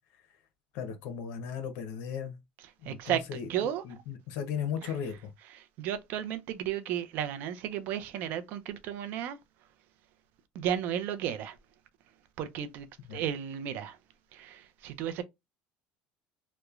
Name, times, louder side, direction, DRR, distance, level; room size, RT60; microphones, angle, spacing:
voice 1, 0.7-2.4 2.8-3.5 3.8-5.3 13.1-13.2, left 7 dB, 75° left, 0.7 m, -36 dB
voice 2, 2.6-3.8 4.8-4.9 5.5-9.4 10.5-11.6 12.4-14.0 14.3-15.2, right 10 dB, 60° right, 0.4 m, -34 dB
3.0 x 2.1 x 2.3 m
cardioid pair, 135°, 3 cm